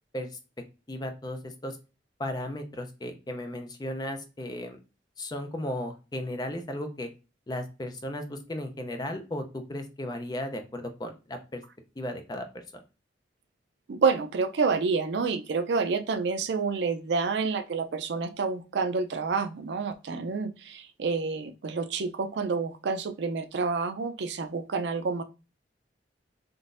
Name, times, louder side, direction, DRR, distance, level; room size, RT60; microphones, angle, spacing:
voice 1, 0.9-1.8 2.2-4.8 5.2-7.1 7.5-11.6 12.0-12.8, left 1 dB, 20° left, 6 dB, 0.5 m, -35 dB
voice 2, 13.9-25.2, right 4 dB, 70° right, 9 dB, 0.4 m, -28 dB
3.7 x 2.5 x 2.5 m, 0.31 s
head